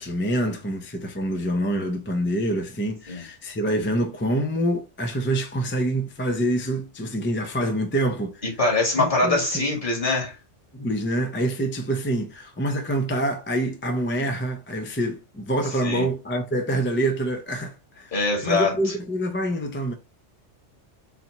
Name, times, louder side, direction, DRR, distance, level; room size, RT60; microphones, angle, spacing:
voice 1, 0.0-8.5 9.0-9.8 10.7-18.2 18.4-19.9, right 1 dB, 15° left, 0.4 m, -26 dB
voice 2, 8.6-10.3 15.8-16.1 18.1-18.7, left 2 dB, 45° left, 2.0 m, -23 dB
4.1 x 2.8 x 4.2 m
omnidirectional pair, 1.2 m